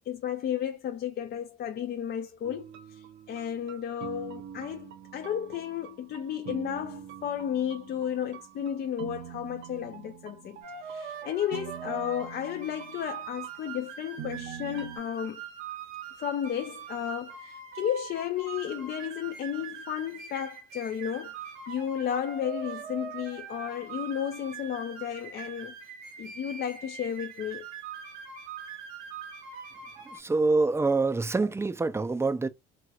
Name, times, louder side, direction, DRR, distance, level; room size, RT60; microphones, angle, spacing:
voice 1, 0.1-15.4 16.2-21.3 21.7-25.7 26.2-27.7, left 9 dB, 50° left, 0.5 m, -33 dB
sound 1, 2.4-15.0, right 9 dB, 60° right, 0.7 m, -45 dB
sound 2, 10.6-30.2, right 6 dB, 85° right, 1.0 m, -42 dB
voice 2, 30.2-32.5, right 3 dB, 10° right, 0.5 m, -25 dB
2.9 x 2.9 x 2.3 m
supercardioid pair, 75°, 21 cm